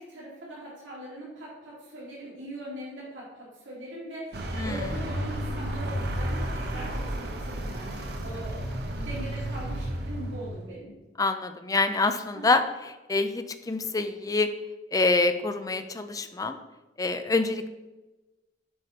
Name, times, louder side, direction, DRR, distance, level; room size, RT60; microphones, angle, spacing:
voice 1, 0.0-10.9 12.3-12.6, right 1 dB, 90° right, -7 dB, 2.4 m, -41 dB
Vehicle, 4.3-10.7, right 1 dB, 55° right, 1.0 m, -32 dB
voice 2, 11.2-14.5 14.9-16.6 17.0-17.7, left 3 dB, 20° left, 9 dB, 0.4 m, -26 dB
7.8 x 5.0 x 4.3 m, 1.1 s
head